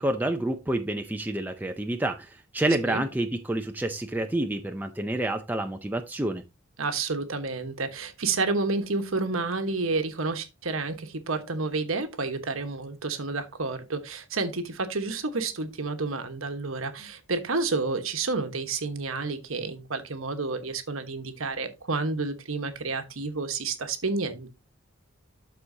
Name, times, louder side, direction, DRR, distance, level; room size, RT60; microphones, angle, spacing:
voice 1, 0.0-6.4, right 1 dB, 10° right, 0.5 m, -28 dB
voice 2, 6.8-24.5, right 3 dB, 75° right, 1.2 m, -30 dB
12.5 x 4.3 x 2.7 m
head